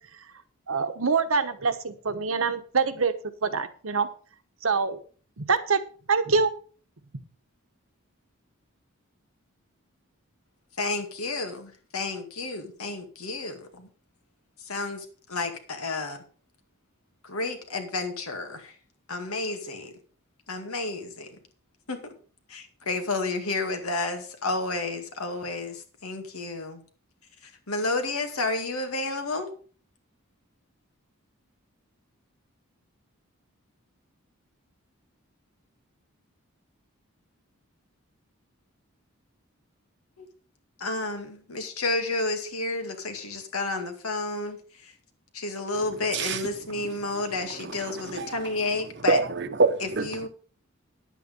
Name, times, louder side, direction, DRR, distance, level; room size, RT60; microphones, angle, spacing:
voice 1, 0.7-3.1 3.4-4.1 4.6-5.0 5.4-5.8 6.1-6.5, right 4 dB, 70° right, 1.1 m, -25 dB
voice 2, 10.8-13.9 14.6-16.2 17.2-18.7 19.1-19.9 20.5-21.4 21.9-22.1 22.5-26.8 27.4-29.5 40.2-40.3 40.8-44.9 45.3-49.2 49.8-50.3, left 2 dB, 90° left, 2.1 m, -31 dB
voice 3, 47.6-48.4 49.1-50.3, right 3 dB, 55° right, 0.9 m, -26 dB
10.0 x 8.5 x 5.2 m
head